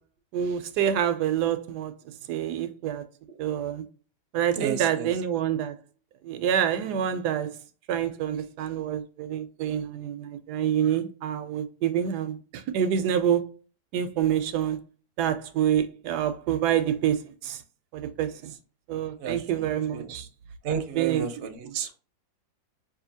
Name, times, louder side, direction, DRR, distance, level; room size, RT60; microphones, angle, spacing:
voice 1, 0.3-1.9 2.3-3.0 3.4-3.8 4.3-5.7 6.2-7.6 7.9-13.5 13.9-14.8 15.2-17.6 17.9-18.5 18.9-20.3 21.0-21.2, right 9 dB, 80° right, 1.1 m, -27 dB
voice 2, 4.5-5.1 19.2-20.2 20.6-22.0, right 7 dB, 50° right, 0.7 m, -32 dB
5.5 x 2.6 x 2.7 m
omnidirectional pair, 1.8 m